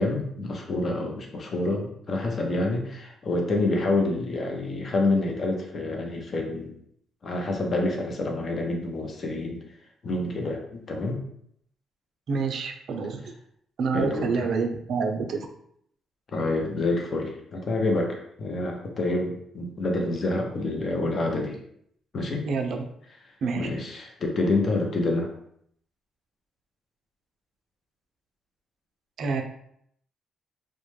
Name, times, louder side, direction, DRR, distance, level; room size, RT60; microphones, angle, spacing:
voice 1, 0.0-6.7 7.2-9.6 10.0-11.2 13.9-14.3 16.3-21.6 22.1-22.4 23.6-25.3, left 2 dB, 45° left, 2 dB, 0.6 m, -27 dB
voice 2, 12.3-13.2 13.8-15.5 22.5-22.8 23.4-23.7 29.2-29.4, right 5 dB, 65° right, 4 dB, 0.4 m, -27 dB
2.2 x 2.1 x 3.1 m, 0.69 s
cardioid pair, 90°, 0 cm